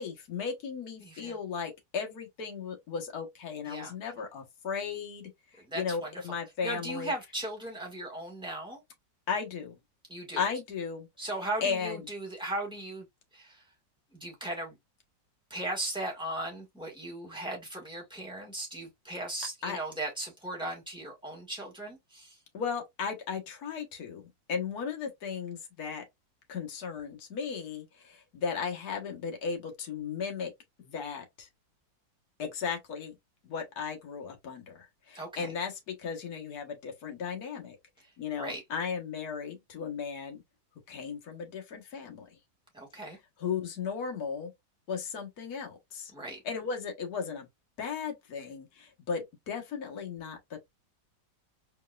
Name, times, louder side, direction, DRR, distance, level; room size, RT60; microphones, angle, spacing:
voice 1, 0.0-7.1 9.3-9.7 10.4-11.1 11.6-12.1 19.6-19.8 22.5-26.0 26.5-30.5 30.8-31.5 32.4-33.2 33.4-37.8 38.2-40.4 40.9-42.4 42.9-44.5 44.9-46.1 46.4-47.5 47.8-50.6, left 6 dB, 55° left, 1.7 m, -36 dB
voice 2, 1.0-1.3 3.7-3.9 5.6-6.1 6.6-8.8 10.1-10.4 11.2-13.1 13.3-13.6 14.1-14.8 15.5-22.4 35.1-35.5 38.4-38.6 42.7-43.2 46.1-46.4, right 1 dB, 5° right, 1.6 m, -37 dB
4.5 x 3.2 x 2.4 m
omnidirectional pair, 2.1 m